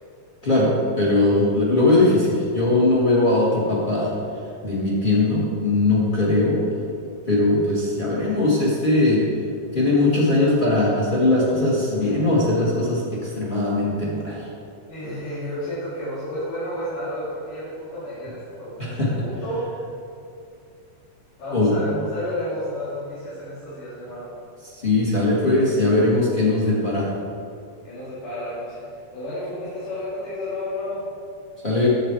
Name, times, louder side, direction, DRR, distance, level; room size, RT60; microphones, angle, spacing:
voice 1, 0.4-4.1 4.6-6.6 7.3-9.2 9.7-14.4 19.0-19.1 21.5-22.0 24.8-27.1 31.6-31.9, left 2 dB, 25° left, -6 dB, 1.1 m, -20 dB
voice 2, 14.9-19.8 21.4-24.3 27.8-31.0, left 1 dB, 85° left, -13 dB, 4.0 m, -31 dB
9.1 x 7.5 x 4.3 m, 2.4 s
omnidirectional pair, 3.5 m